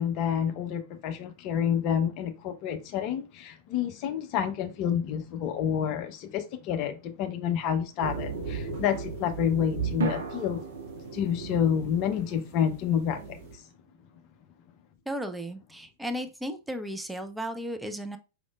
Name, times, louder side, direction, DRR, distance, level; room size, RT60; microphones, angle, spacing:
voice 1, 0.0-10.6 11.1-13.6, left 8 dB, 40° left, 0.6 m, -29 dB
sound 1, 8.0-13.5, right 5 dB, 35° right, 2.0 m, -37 dB
sound 2, 10.0-14.3, right 5 dB, 65° right, 0.6 m, -40 dB
voice 2, 15.1-18.2, equal, 5° right, 0.4 m, -35 dB
5.1 x 3.5 x 2.3 m
figure-of-eight pair, 95°, 0 cm